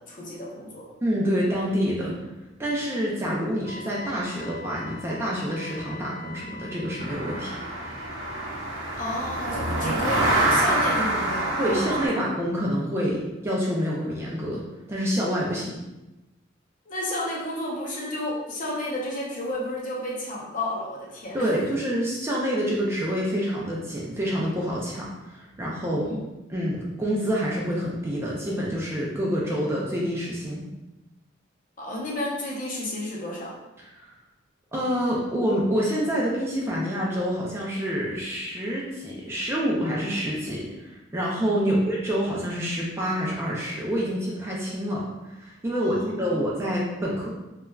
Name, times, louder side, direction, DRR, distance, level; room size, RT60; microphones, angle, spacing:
voice 1, 0.0-0.9 3.3-3.6 9.0-12.2 16.9-21.5 25.9-26.2 31.8-33.5 41.6-41.8 45.8-46.4, left 1 dB, 40° left, -4 dB, 0.6 m, -32 dB
voice 2, 1.0-2.1 2.6-7.7 11.6-14.6 14.9-15.8 21.3-26.1 26.5-30.7 33.9-34.1 34.7-47.3, equal, 15° right, -4 dB, 0.3 m, -27 dB
Wind instrument woodwind instrument, 3.6-8.4, left 2 dB, 15° left, 1.3 m, -43 dB
sound 1, 7.0-12.1, right 1 dB, 85° right, 0.6 m, -26 dB
3.1 x 2.3 x 2.2 m, 1.0 s
head